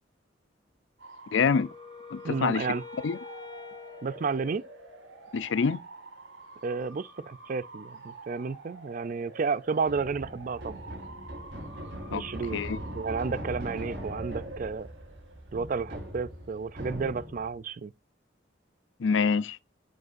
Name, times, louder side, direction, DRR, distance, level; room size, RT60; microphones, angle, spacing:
Bark / Motor vehicle (road) / Siren, 1.0-17.3, right 3 dB, 85° right, 1.9 m, -48 dB
voice 1, 1.3-1.7 2.1-2.7 3.0-3.2 5.3-5.8 12.1-12.2 12.5-12.8 19.0-19.6, left 5 dB, 85° left, 0.5 m, -26 dB
Wind instrument woodwind instrument, 1.4-5.3, left 6 dB, 25° left, 1.2 m, -47 dB
voice 2, 2.2-2.8 4.0-4.6 6.6-10.8 12.1-12.6 12.9-14.9 15.5-17.9, right 5 dB, 45° right, 0.4 m, -31 dB
sound 1, 9.8-17.6, equal, 70° right, 5.2 m, -40 dB
9.5 x 7.8 x 2.6 m
head